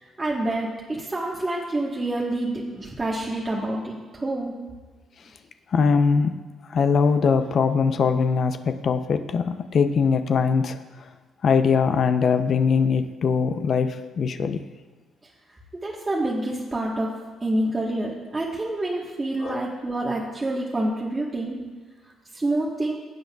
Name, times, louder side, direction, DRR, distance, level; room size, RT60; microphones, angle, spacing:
voice 1, 0.0-4.5 15.8-17.1 17.4-21.6 22.3-23.0, right 1 dB, 20° right, -4 dB, 1.2 m, -27 dB
voice 2, 5.7-6.3 6.7-10.8 11.4-14.6 19.4-19.6, left 5 dB, 55° left, 9 dB, 0.5 m, -21 dB
17.5 x 7.8 x 2.3 m, 1.3 s
cardioid pair, 90°, 0 cm